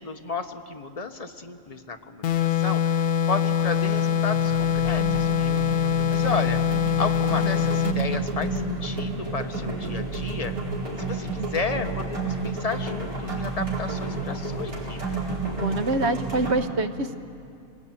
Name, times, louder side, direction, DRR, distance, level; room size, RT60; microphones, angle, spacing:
voice 1, 0.0-6.6 7.0-10.5 11.0-15.2, left 4 dB, 30° left, 6 dB, 1.1 m, -33 dB
sound 1, 2.2-8.0, left 8 dB, 90° left, 1.4 m, -23 dB
sound 2, 3.3-3.6 3.8-16.5, right 3 dB, 75° right, 5.2 m, -31 dB
voice 2, 15.6-17.2, right 2 dB, 50° right, 10 dB, 1.2 m, -25 dB
24.5 x 21.0 x 9.0 m, 2.5 s
omnidirectional pair, 1.6 m